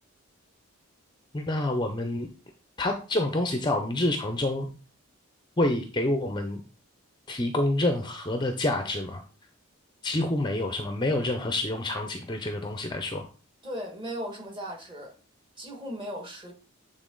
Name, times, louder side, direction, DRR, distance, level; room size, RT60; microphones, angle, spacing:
voice 1, 1.3-2.3 2.8-4.7 5.6-6.6 7.3-9.2 10.0-13.3, left 1 dB, 20° left, 0.6 m, -27 dB
voice 2, 13.6-15.1 15.6-16.5, equal, 20° right, 1.7 m, -37 dB
8.4 x 3.9 x 3.8 m
head